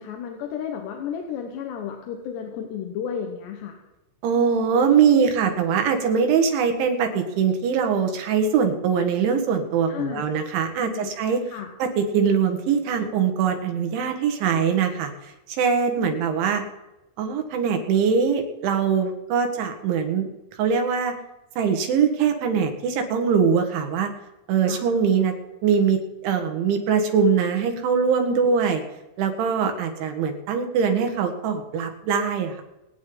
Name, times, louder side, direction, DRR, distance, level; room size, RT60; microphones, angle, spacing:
voice 1, 0.0-3.8 9.9-10.2 10.8-11.1 11.5-11.7 16.0-16.1 24.6-24.8 28.3-28.6, left 8 dB, 75° left, 2 dB, 3.2 m, -32 dB
voice 2, 4.2-11.4 11.8-15.1 15.5-16.6 17.2-20.3 20.6-21.1 21.6-24.1 24.5-25.4 25.6-28.8 29.2-32.6, right 6 dB, 80° right, 5 dB, 4.1 m, -22 dB
27.5 x 9.5 x 4.0 m, 0.97 s
omnidirectional pair, 5.3 m